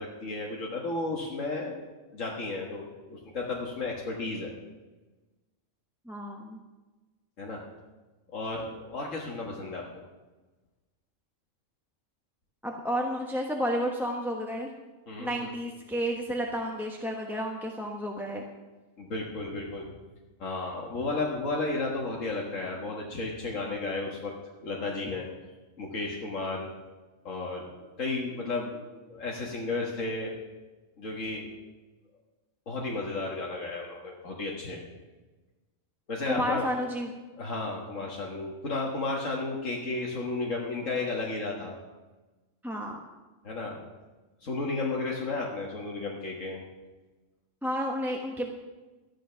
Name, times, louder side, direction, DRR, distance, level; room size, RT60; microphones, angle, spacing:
voice 1, 0.0-1.8 2.1-4.5 7.4-7.6 8.3-9.8 15.1-15.5 19.0-19.8 20.4-24.3 24.6-25.3 25.8-26.7 27.2-27.7 28.0-30.4 31.0-31.5 32.7-34.8 36.1-36.7 37.4-41.8 43.4-43.8 44.4-46.6, left 3 dB, 85° left, -2 dB, 1.9 m, -33 dB
voice 2, 6.1-6.6 12.6-14.7 15.2-18.4 36.3-37.1 42.6-43.0 47.6-48.5, equal, ahead, -1 dB, 1.0 m, -31 dB
13.0 x 10.5 x 5.8 m, 1.2 s
omnidirectional pair, 1.3 m